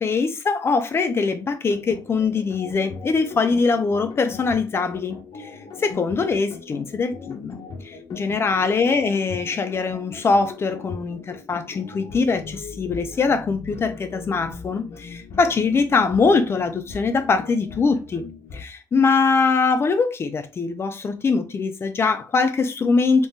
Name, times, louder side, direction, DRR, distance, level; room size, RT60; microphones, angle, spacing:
voice 1, 0.0-5.2 5.8-7.5 7.8-18.3 18.5-23.3, left 4 dB, 35° left, 0.6 m, -22 dB
sound 1, 1.6-18.6, left 5 dB, 65° left, 0.9 m, -39 dB
3.7 x 3.0 x 2.7 m
cardioid pair, 135°, 7 cm